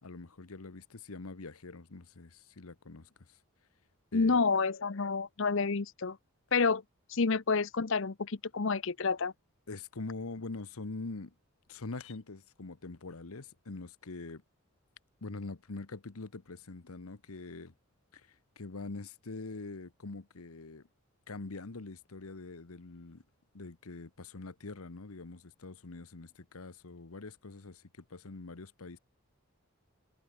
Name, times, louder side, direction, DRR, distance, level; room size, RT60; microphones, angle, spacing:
voice 1, 0.0-3.4 4.1-4.4 9.7-11.3 11.7-14.4 15.2-17.7 18.1-20.9 21.3-23.2 23.5-29.0, left 3 dB, 75° left, 1.1 m, -44 dB
voice 2, 4.1-6.2 6.5-6.8 7.1-9.3, left 4 dB, 60° left, 0.7 m, -29 dB
head